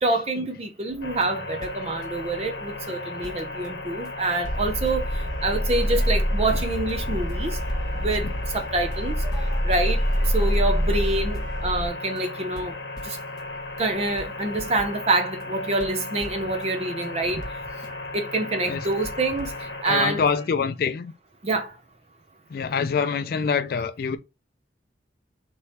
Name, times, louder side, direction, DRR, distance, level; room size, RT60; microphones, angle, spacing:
voice 1, 0.0-5.1 5.4-7.6 8.0-8.3 8.5-9.1 9.6-12.7 13.0-13.2 13.8-17.4 18.1-19.5 19.8-20.3 21.4-21.7, right 2 dB, 35° right, 0.6 m, -26 dB
sound 1, 0.9-20.5, equal, 20° left, 1.3 m, -45 dB
sound 2, 1.0-19.8, left 2 dB, 70° left, 0.9 m, -36 dB
sound 3, 4.4-11.9, equal, 5° left, 1.4 m, -26 dB
voice 2, 19.8-21.1 22.5-24.2, left 6 dB, 55° left, 0.3 m, -25 dB
3.3 x 3.0 x 4.3 m
head